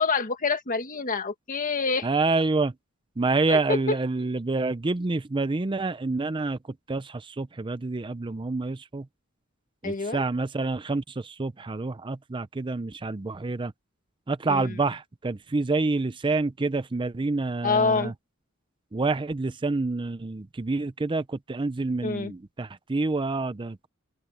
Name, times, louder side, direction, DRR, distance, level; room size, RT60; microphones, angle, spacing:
voice 1, 0.0-2.1 3.5-4.0 9.8-10.2 14.5-14.8 17.6-18.1 22.0-22.3, left 4 dB, 40° left, 1.6 m, -26 dB
voice 2, 2.0-2.7 3.2-6.6 6.9-9.1 9.8-13.7 14.3-18.1 18.9-23.9, right 3 dB, 25° right, 0.5 m, -27 dB
open air
head